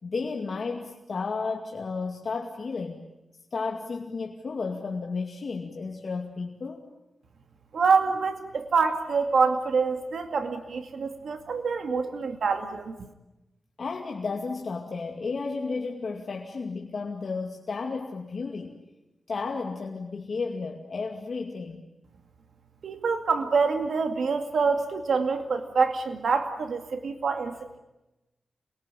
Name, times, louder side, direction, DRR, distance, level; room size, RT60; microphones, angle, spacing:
voice 1, 0.0-3.0 3.5-6.9 13.8-18.8 19.3-21.9, left 4 dB, 55° left, 1 dB, 2.4 m, -33 dB
voice 2, 7.7-12.9 22.8-27.8, right 5 dB, 80° right, 6 dB, 2.3 m, -26 dB
28.5 x 22.5 x 9.1 m, 0.96 s
wide cardioid pair, 145°, 0 cm